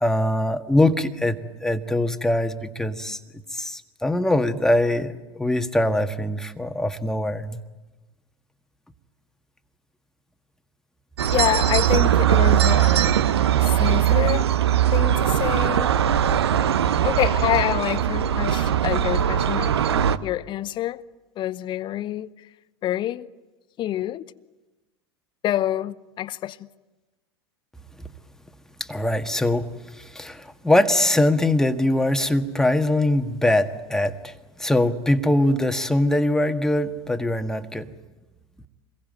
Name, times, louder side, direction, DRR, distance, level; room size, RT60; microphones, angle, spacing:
voice 1, 0.0-3.2 3.5-7.6 28.8-34.3 34.6-37.9, left 1 dB, 5° left, 1.6 m, -22 dB
sound 1, 11.2-20.2, right 10 dB, 70° right, 0.9 m, -20 dB
voice 2, 11.3-13.1 13.6-14.5 14.9-15.9 17.0-19.8 20.2-21.0 21.4-22.5 22.8-23.3 23.8-24.2 25.4-26.7, left 13 dB, 35° left, 0.9 m, -27 dB
28.0 x 22.0 x 9.3 m
figure-of-eight pair, 80°, 14 cm